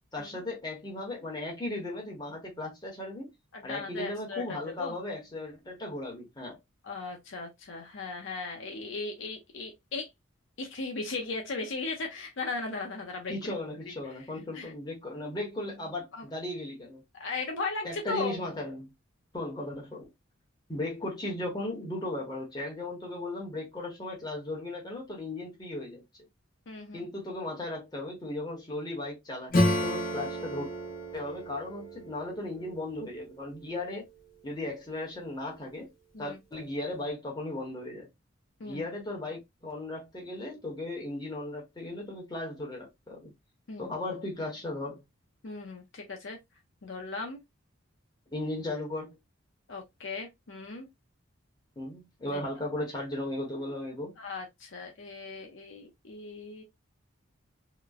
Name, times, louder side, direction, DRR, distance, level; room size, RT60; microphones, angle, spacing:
voice 1, 0.1-3.3 3.6-6.6 13.3-17.0 17.8-18.9 19.3-20.0 20.7-26.0 26.9-30.7 31.1-34.1 34.4-35.9 36.2-38.1 38.6-43.3 43.8-45.0 48.3-49.2 51.8-54.1, left 2 dB, 20° left, 1.0 m, -36 dB
voice 2, 3.5-4.9 6.8-10.1 10.6-13.3 14.5-14.7 16.1-16.3 17.2-18.4 26.7-27.1 36.1-36.4 38.6-38.9 43.7-44.0 45.4-46.4 46.8-47.4 49.7-50.9 52.3-52.4 54.2-56.6, left 3 dB, 65° left, 0.6 m, -37 dB
Acoustic guitar / Strum, 29.5-33.8, left 1 dB, 45° left, 1.0 m, -31 dB
2.9 x 2.0 x 2.3 m
head